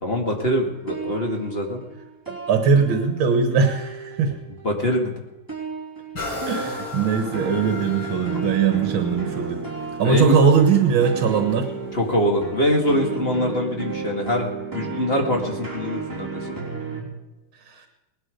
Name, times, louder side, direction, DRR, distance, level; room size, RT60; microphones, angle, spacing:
voice 1, 0.0-1.8 4.6-5.2 10.0-10.4 11.9-16.5, left 1 dB, 30° left, 1 dB, 2.2 m, -23 dB
sound 1, 0.7-3.3 3.6-4.7 5.5-17.0, right 4 dB, 10° right, 3.5 m, -33 dB
voice 2, 2.3-4.4 6.5-9.6 10.0-11.7 17.7-17.8, right 6 dB, 75° right, 6 dB, 2.1 m, -20 dB
sound 2, 6.1-13.8 14.3-14.4, left 3 dB, 70° left, 6.0 m, -37 dB
19.5 x 12.5 x 5.2 m, 1.1 s
omnidirectional pair, 2.2 m